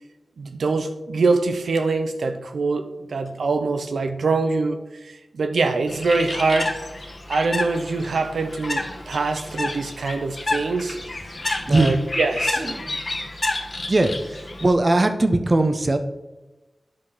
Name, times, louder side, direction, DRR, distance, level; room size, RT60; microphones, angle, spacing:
voice 1, 0.4-6.8 7.1-11.0 11.6-12.7, right 3 dB, 85° right, 0.7 m, -24 dB
Bird, 5.9-14.7, left 2 dB, 50° left, 1.3 m, -30 dB
voice 2, 12.6-13.0 13.9-16.0, right 2 dB, 45° right, 0.8 m, -20 dB
10.5 x 3.8 x 6.2 m
cardioid pair, 50°, 0 cm